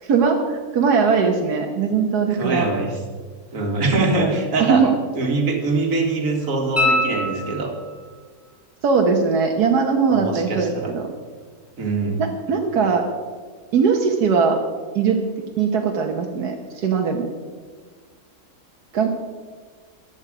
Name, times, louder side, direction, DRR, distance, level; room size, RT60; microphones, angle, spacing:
voice 1, 0.0-2.7 4.1-4.9 8.8-11.1 12.2-13.0 13.7-14.6 15.0-15.2 15.6-17.3 18.9-19.1, right 5 dB, 85° right, 2 dB, 1.6 m, -20 dB
voice 2, 2.3-3.0 3.5-4.8 5.1-7.7 10.1-10.9 11.8-12.2, right 3 dB, 60° right, 2 dB, 2.2 m, -23 dB
sound 1, 6.8-8.1 10.9-11.0, left 2 dB, 10° left, 1.4 m, -23 dB
14.5 x 10.5 x 5.0 m, 1.5 s
omnidirectional pair, 1.6 m